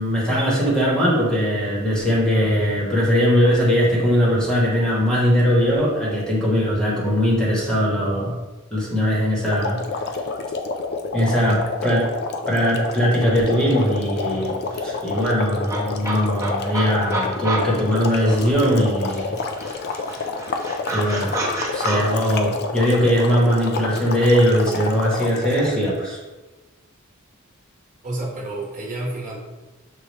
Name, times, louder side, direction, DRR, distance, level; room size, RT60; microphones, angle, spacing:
voice 1, 0.0-8.3 8.7-9.8 11.1-12.1 12.5-14.5 14.8-19.4 20.9-21.4 21.7-26.2, equal, 5° left, -5 dB, 1.0 m, -20 dB
sound 1, 9.5-25.9, left 4 dB, 50° left, 0.4 m, -29 dB
sound 2, 13.8-13.9 14.2-18.8 19.1-22.0, right 2 dB, 15° right, 0.7 m, -30 dB
voice 2, 28.0-29.3, right 2 dB, 40° right, -5 dB, 1.0 m, -29 dB
6.3 x 2.3 x 3.2 m, 1.2 s
head